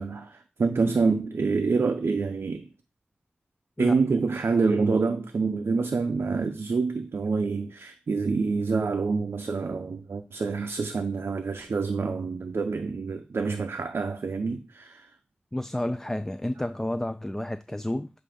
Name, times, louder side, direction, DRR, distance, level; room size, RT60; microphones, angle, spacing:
voice 1, 0.0-2.7 3.8-15.1, right 4 dB, 85° right, 0.5 m, -27 dB
voice 2, 15.5-18.1, left 1 dB, 10° left, 0.3 m, -30 dB
7.7 x 2.6 x 5.0 m
wide cardioid pair, 85°, 4 cm